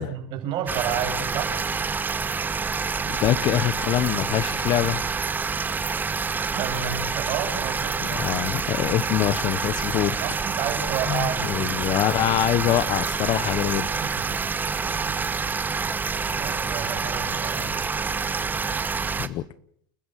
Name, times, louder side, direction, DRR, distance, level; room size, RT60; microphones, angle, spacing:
voice 1, 0.0-1.6 6.4-8.3 10.2-11.8 14.0-15.3 16.4-17.8, right 8 dB, 50° right, 5 dB, 6.9 m, -32 dB
sound 1, 0.7-19.3, right 5 dB, 15° right, 1.2 m, -27 dB
voice 2, 3.1-5.0 8.1-10.2 11.1-13.9 19.2-19.4, left 13 dB, 45° left, 17 dB, 1.2 m, -24 dB
29.5 x 14.0 x 7.6 m, 0.65 s
supercardioid pair, 120°, 11 cm